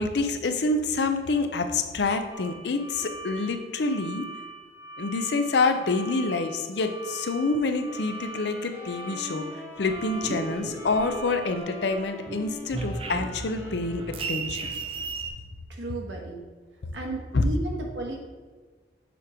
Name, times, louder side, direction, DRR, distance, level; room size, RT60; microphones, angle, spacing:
voice 1, 0.0-4.3 5.0-9.5 9.8-14.6 17.3-17.4, left 3 dB, 70° left, 7 dB, 0.5 m, -27 dB
sound 1, 2.3-12.0, right 3 dB, 10° right, 0.9 m, -42 dB
sound 2, 7.8-14.6, equal, 10° left, 1.3 m, -42 dB
sound 3, 9.9-11.6 11.9-15.3, right 3 dB, 30° right, 0.4 m, -35 dB
voice 2, 15.7-16.5 16.9-18.2, right 2 dB, 85° right, 1 dB, 1.1 m, -34 dB
7.1 x 3.0 x 4.7 m, 1.4 s
head